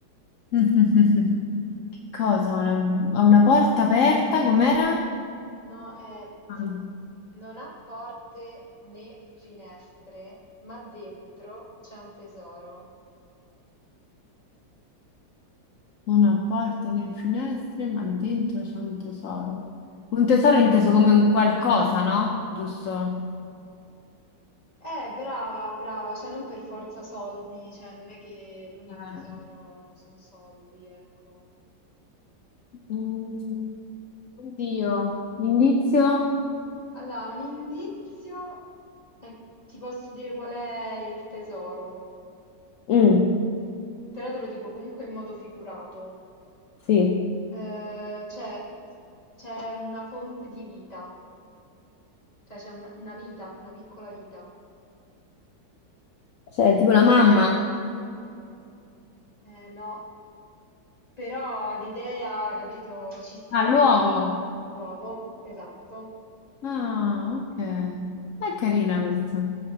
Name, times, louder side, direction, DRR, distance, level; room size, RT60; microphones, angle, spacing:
voice 1, 0.5-1.4 2.1-5.1 6.5-6.9 16.1-19.7 20.1-23.3 28.9-29.4 32.9-33.7 34.4-36.3 42.9-43.4 46.9-47.3 56.6-57.7 63.5-64.4 66.6-69.5, left 5 dB, 60° left, 1 dB, 0.9 m, -21 dB
voice 2, 5.6-6.3 7.3-12.9 24.8-31.4 36.9-38.6 39.2-39.4 39.7-42.0 44.1-46.2 47.5-48.7 49.4-51.2 52.5-54.5 59.4-60.1 61.2-64.0 64.7-66.1, equal, 20° left, -6 dB, 2.7 m, -38 dB
19.5 x 7.8 x 2.9 m, 2.5 s
omnidirectional pair, 2.0 m